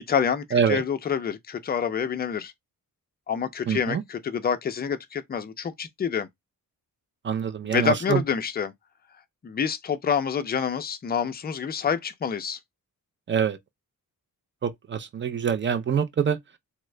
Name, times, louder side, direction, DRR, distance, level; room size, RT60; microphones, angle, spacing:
voice 1, 0.0-2.5 3.3-6.3 7.6-8.7 9.4-12.6, left 7 dB, 30° left, 0.4 m, -27 dB
voice 2, 3.7-4.0 7.2-8.2 13.3-13.6 14.6-16.4, right 7 dB, 35° right, 0.4 m, -25 dB
3.5 x 2.0 x 3.1 m
wide cardioid pair, 150°, 35 cm